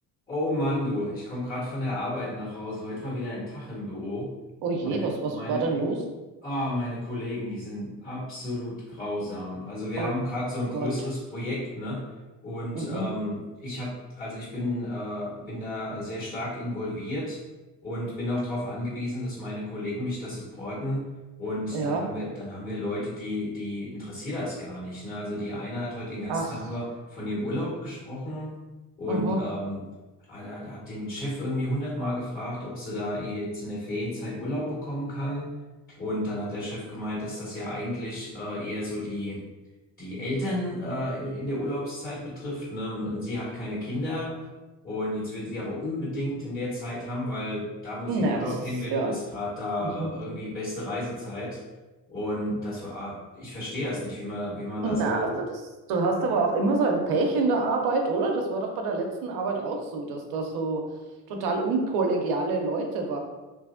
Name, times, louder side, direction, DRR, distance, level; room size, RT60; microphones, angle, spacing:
voice 1, 0.3-4.3 4.8-5.6 6.4-12.0 12.4-17.4 17.8-21.0 21.4-28.5 29.0-29.8 30.3-35.5 36.0-39.4 40.0-44.4 44.8-51.6 52.1-55.4, left 1 dB, 25° left, -6 dB, 1.5 m, -32 dB
voice 2, 4.6-6.0 10.0-10.1 10.7-10.9 12.7-13.0 21.7-22.0 26.3-26.6 29.1-29.4 48.1-48.5 48.9-49.2 49.8-50.1 54.8-55.3 55.9-60.8 61.3-63.2, right 3 dB, 75° right, 2 dB, 0.7 m, -26 dB
3.2 x 2.5 x 2.5 m, 1.1 s
supercardioid pair, 70°, 38 cm